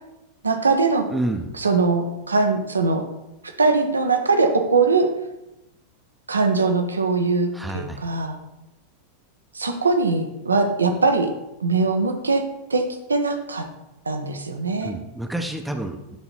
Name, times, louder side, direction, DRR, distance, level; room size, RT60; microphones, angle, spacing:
voice 1, 0.4-1.1 1.6-3.0 3.6-5.1 6.3-8.4 9.5-11.3 11.6-12.4 12.7-12.8 13.1-13.7 14.1-14.9, right 4 dB, 75° right, 6 dB, 0.9 m, -21 dB
voice 2, 1.1-1.5 7.5-8.0 14.8-16.2, right 1 dB, 5° right, 5 dB, 0.8 m, -29 dB
11.5 x 3.9 x 4.4 m, 0.95 s
figure-of-eight pair, 90°, 0 cm